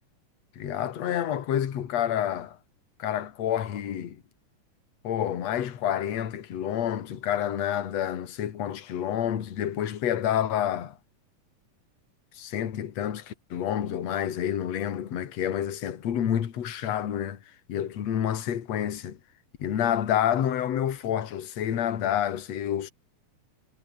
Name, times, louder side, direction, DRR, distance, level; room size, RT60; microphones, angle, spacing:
voice 1, 0.6-2.6 3.0-4.2 5.0-11.0 12.3-17.4 17.7-19.2 19.6-22.9, left 10 dB, 55° left, 2.9 m, -28 dB
omnidirectional pair, 3.9 m